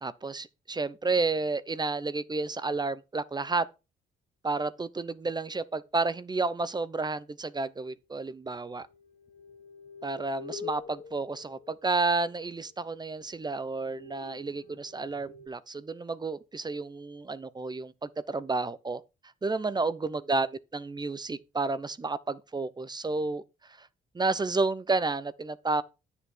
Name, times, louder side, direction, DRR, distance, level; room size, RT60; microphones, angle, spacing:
voice 1, 0.0-3.7 4.4-8.9 10.0-19.0 19.4-20.5 20.7-23.4 23.8-23.9 24.1-25.8, right 3 dB, 20° right, 0.7 m, -31 dB
sound 1, 8.7-12.3 12.9-13.0 13.4-15.5, left 5 dB, 40° left, 1.2 m, -46 dB
9.9 x 7.0 x 4.4 m
cardioid pair, 90°, 20 cm